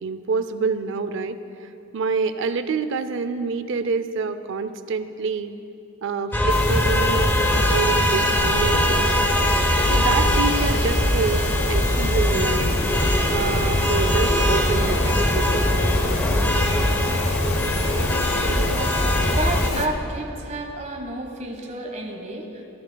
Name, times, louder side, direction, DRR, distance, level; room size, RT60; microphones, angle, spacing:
voice 1, 0.0-1.7 1.9-5.6 6.0-9.3 9.9-12.8 13.3-15.5 18.5-18.8, right 4 dB, 60° right, 11 dB, 0.5 m, -27 dB
sound 1, 6.3-19.7, equal, 10° left, 0.7 m, -22 dB
sound 2, 6.5-19.9, left 2 dB, 80° left, 0.9 m, -27 dB
voice 2, 18.6-22.6, right 2 dB, 35° right, 2 dB, 1.3 m, -31 dB
25.0 x 13.5 x 2.3 m, 2.7 s
head